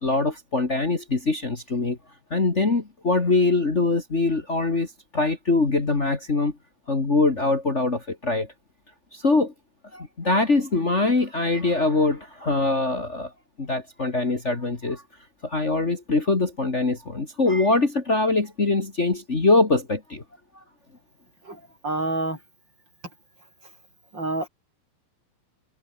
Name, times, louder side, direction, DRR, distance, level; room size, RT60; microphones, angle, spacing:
voice 1, 0.0-2.0 2.3-4.9 5.1-6.5 6.9-8.5 9.1-9.5 9.9-13.3 13.6-15.0 15.4-20.2, left 3 dB, 90° left, 0.6 m, -23 dB
voice 2, 21.8-22.4 24.1-24.5, right 2 dB, 20° right, 7.6 m, -27 dB
omnidirectional pair, 5.6 m